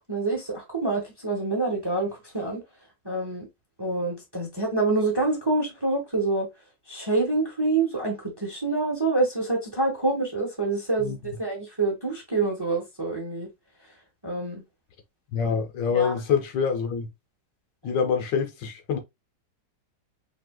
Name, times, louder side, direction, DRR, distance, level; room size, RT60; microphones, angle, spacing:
voice 1, 0.1-2.6 3.0-3.5 3.8-6.5 6.9-13.5 14.2-14.6 15.9-16.1, right 3 dB, 15° right, 1.0 m, -26 dB
voice 2, 11.0-11.4 15.3-17.1 17.8-19.0, left 6 dB, 70° left, 1.4 m, -26 dB
5.3 x 3.4 x 2.2 m
omnidirectional pair, 2.1 m